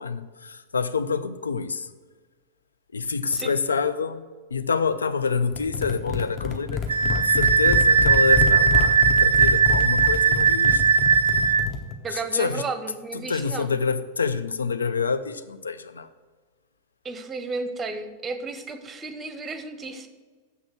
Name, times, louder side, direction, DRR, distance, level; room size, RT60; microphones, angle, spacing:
voice 1, 0.0-1.9 2.9-4.2 4.5-6.8 7.1-10.8 12.1-12.6 13.3-16.1, left 5 dB, 75° left, 12 dB, 0.4 m, -27 dB
sound 1, 5.5-11.9, left 4 dB, 30° left, 1.0 m, -28 dB
Wind instrument woodwind instrument, 6.9-11.7, right 6 dB, 70° right, 0.5 m, -19 dB
voice 2, 12.0-13.7 17.0-20.1, right 4 dB, 20° right, 10 dB, 0.8 m, -33 dB
7.1 x 6.3 x 6.0 m, 1.4 s
figure-of-eight pair, 90°, 0 cm